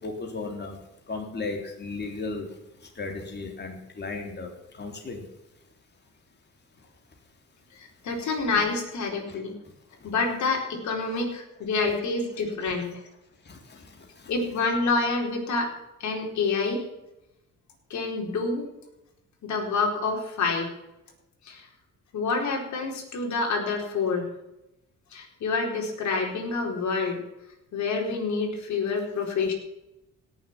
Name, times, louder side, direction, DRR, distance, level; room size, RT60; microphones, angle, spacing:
voice 1, 0.0-0.8 1.1-2.5 2.9-5.2 9.3-9.4 12.6-12.7 13.4-14.3, left 3 dB, 35° left, 2 dB, 3.4 m, -36 dB
voice 2, 8.0-9.6 10.0-13.0 14.3-15.7 16.0-16.8 17.9-18.6 19.4-20.7 21.4-21.7 22.1-24.3 25.1-27.2 27.7-29.5, left 4 dB, 70° left, 1 dB, 4.4 m, -27 dB
17.5 x 7.2 x 7.4 m, 0.92 s
cardioid pair, 90°, 30 cm